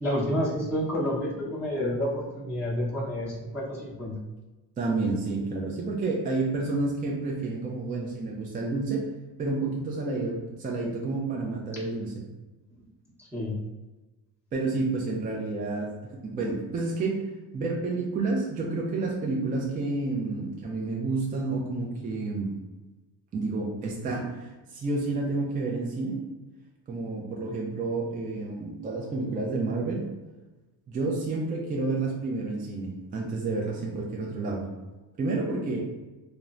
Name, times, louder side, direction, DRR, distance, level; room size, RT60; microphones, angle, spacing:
voice 1, 0.0-4.1 13.2-13.6, equal, 5° right, -10 dB, 0.8 m, -29 dB
voice 2, 4.8-9.1 9.4-12.3 14.5-17.2 17.5-22.5 23.3-26.2 26.9-30.0 30.9-34.7 35.2-35.8, right 3 dB, 20° right, -2 dB, 0.3 m, -30 dB
3.0 x 2.0 x 2.4 m, 1.1 s
supercardioid pair, 100°, 44 cm